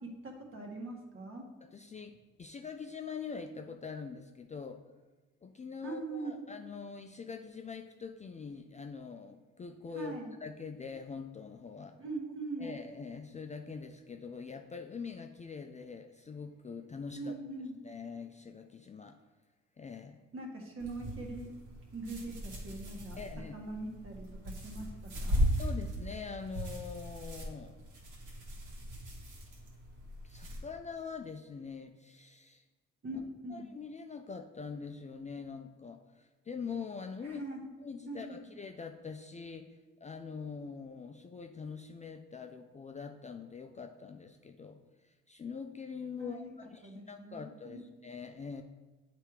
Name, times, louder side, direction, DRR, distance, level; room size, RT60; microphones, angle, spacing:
voice 1, 0.0-1.4 5.8-6.3 9.9-10.3 12.0-12.7 17.2-17.7 20.3-21.5 21.9-23.2 23.5-24.9 25.2-25.5 33.0-33.7 37.2-37.6 38.1-38.5 46.2-46.5 46.8-47.8, right 2 dB, 45° right, 1 dB, 1.6 m, -42 dB
voice 2, 1.6-4.8 5.4-12.0 12.6-17.4 17.8-19.2 19.8-20.2 23.2-23.5 25.6-27.8 30.2-32.6 33.5-37.4 37.8-48.6, left 5 dB, 25° left, 5 dB, 0.4 m, -44 dB
sound 1, 20.8-30.6, equal, 80° right, 1.8 m, -38 dB
8.4 x 3.4 x 4.7 m, 1.3 s
cardioid pair, 90°, 30 cm